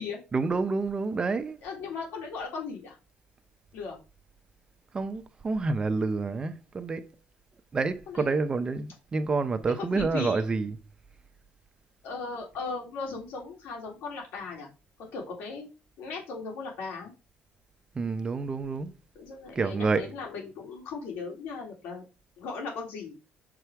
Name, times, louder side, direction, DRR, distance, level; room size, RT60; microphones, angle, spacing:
voice 1, 0.3-1.6 4.9-7.1 7.7-10.8 17.9-18.9 19.6-20.1, right 4 dB, 25° right, 0.7 m, -28 dB
voice 2, 1.6-3.0 3.7-4.0 8.1-8.4 9.8-10.5 12.0-14.7 15.1-15.7 16.0-17.1 19.1-22.0 22.4-23.2, left 4 dB, 85° left, 3.3 m, -37 dB
6.8 x 4.9 x 4.6 m
cardioid pair, 135°, 4 cm